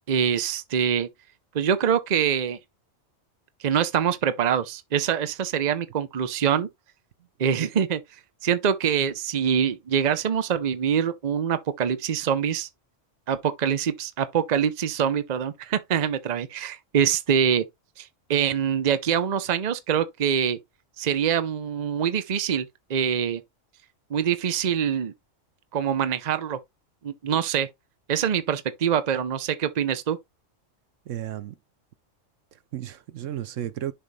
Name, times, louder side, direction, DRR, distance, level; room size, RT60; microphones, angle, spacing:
voice 1, 0.1-1.1 1.5-2.6 3.6-6.7 7.4-8.0 8.4-12.7 13.3-17.7 18.0-20.6 21.0-23.4 24.1-25.1 25.7-26.6 27.0-27.7 28.1-30.2, right 8 dB, 40° right, 0.7 m, -24 dB
voice 2, 31.1-31.5 32.5-33.9, right 11 dB, 80° right, 1.0 m, -33 dB
6.8 x 3.0 x 5.3 m
omnidirectional pair, 1.3 m